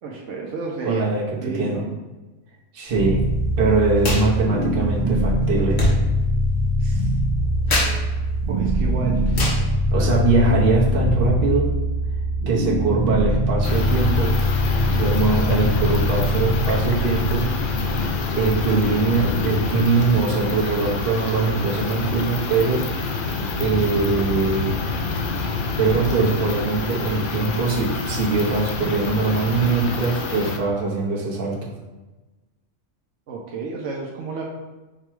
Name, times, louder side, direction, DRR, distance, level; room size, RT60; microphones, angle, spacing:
voice 1, 0.0-1.0 1.4-1.9 6.8-7.1 8.5-9.2 9.9-10.1 10.5-10.6 33.3-34.4, right 4 dB, 75° right, -2 dB, 1.0 m, -31 dB
voice 2, 0.8-1.8 2.7-3.2 3.6-5.8 9.9-11.7 12.5-14.3 14.9-17.4 18.4-22.8 23.6-24.8 25.8-31.7, right 3 dB, 50° right, -4 dB, 1.1 m, -22 dB
sound 1, 2.9-21.9, equal, 20° right, 1.1 m, -23 dB
sound 2, 4.0-4.3 4.5-10.7, left 1 dB, 75° left, 1.5 m, -28 dB
sound 3, 13.6-30.6, left 4 dB, 60° left, 0.5 m, -27 dB
4.9 x 2.2 x 4.5 m, 1.1 s
omnidirectional pair, 1.3 m